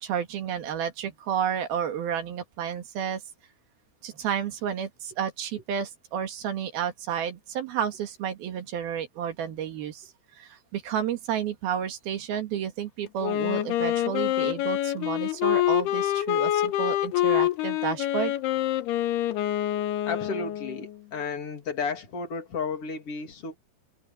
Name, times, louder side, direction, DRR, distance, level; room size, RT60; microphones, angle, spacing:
voice 1, 0.0-3.2 4.0-10.1 10.4-18.3, right 8 dB, 70° right, 3.7 m, -31 dB
Wind instrument woodwind instrument, 13.2-21.0, left 13 dB, 80° left, 3.0 m, -26 dB
voice 2, 20.0-23.6, left 5 dB, 40° left, 3.5 m, -33 dB
omnidirectional pair, 4.7 m